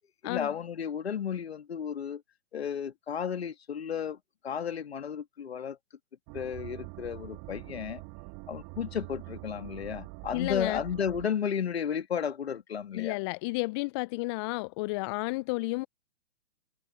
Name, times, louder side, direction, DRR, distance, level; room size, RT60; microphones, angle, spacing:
voice 1, 0.2-2.2 2.5-4.2 4.4-5.8 6.3-8.0 8.5-13.2, left 7 dB, 60° left, 2.1 m, -33 dB
sound 1, 6.3-11.3, right 34 dB, 30° right, 3.8 m, -44 dB
voice 2, 10.3-10.8 12.9-15.9, left 24 dB, 25° left, 0.7 m, -32 dB
figure-of-eight pair, 120°, 35 cm